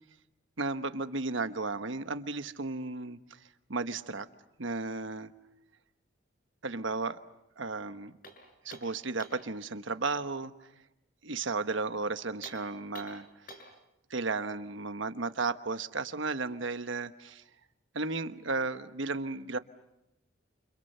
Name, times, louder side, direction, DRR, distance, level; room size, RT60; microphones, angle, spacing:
voice 1, 0.6-3.4 3.7-4.3 4.6-5.3 6.6-7.2 7.6-8.2 8.6-10.5 11.2-13.6 14.1-17.4 17.9-19.6, right 3 dB, 65° right, 10 dB, 1.2 m, -34 dB
sound 1, 8.2-9.5 12.3-13.8, left 1 dB, 45° left, 6.5 m, -49 dB
30.0 x 29.0 x 6.8 m, 0.90 s
head